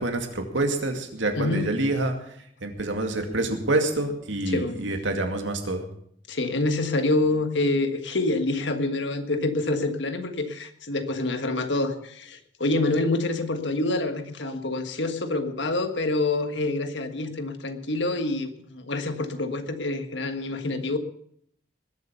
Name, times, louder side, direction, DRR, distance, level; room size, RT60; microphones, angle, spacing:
voice 1, 0.0-2.1 2.6-5.8, right 2 dB, 85° right, 5 dB, 2.3 m, -27 dB
voice 2, 1.4-1.7 4.5-4.8 6.3-21.0, left 2 dB, 70° left, 7 dB, 1.6 m, -27 dB
20.5 x 8.0 x 6.9 m, 0.68 s
head